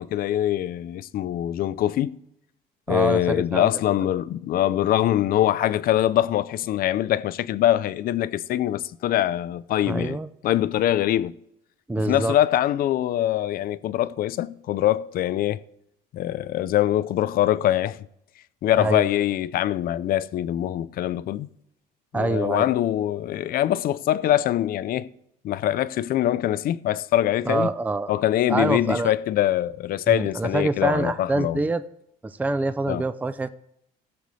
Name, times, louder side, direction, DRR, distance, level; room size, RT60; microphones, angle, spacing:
voice 1, 0.0-2.2 2.9-10.2 10.4-11.3 12.1-15.6 16.1-18.0 18.6-21.5 22.1-25.1 25.4-27.7 28.1-31.6 32.9-33.0, left 12 dB, 60° left, 0.5 m, -23 dB
voice 2, 2.9-3.7 9.9-10.3 11.9-12.4 18.8-19.1 22.1-22.7 27.5-28.1 28.5-29.2 30.1-31.8 32.2-33.5, right 2 dB, 10° right, 0.4 m, -25 dB
16.5 x 7.0 x 3.2 m
cardioid pair, 110°, 17 cm